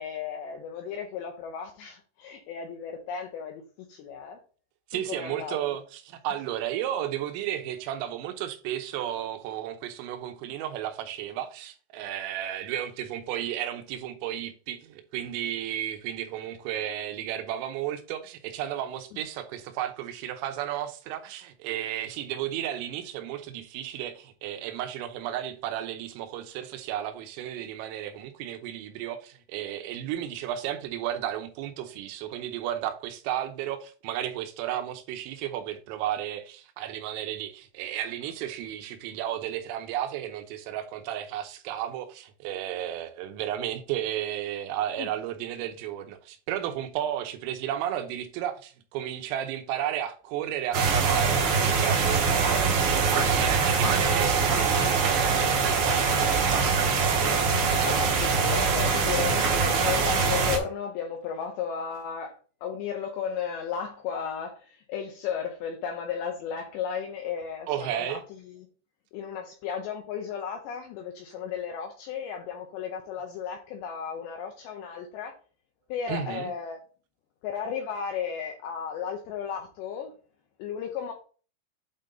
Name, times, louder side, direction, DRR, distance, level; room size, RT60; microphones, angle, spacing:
voice 1, 0.0-4.4 4.9-5.6 45.0-45.1 57.4-68.7 69.1-75.3 75.9-76.8 77.4-80.1 80.6-81.1, left 7 dB, 80° left, 2.6 m, -34 dB
voice 2, 4.9-57.0 67.7-68.2 76.1-76.5, right 11 dB, 90° right, 3.5 m, -33 dB
sound 1, 50.7-60.6, right 5 dB, 70° right, 2.2 m, -23 dB
8.6 x 3.8 x 3.9 m
omnidirectional pair, 5.8 m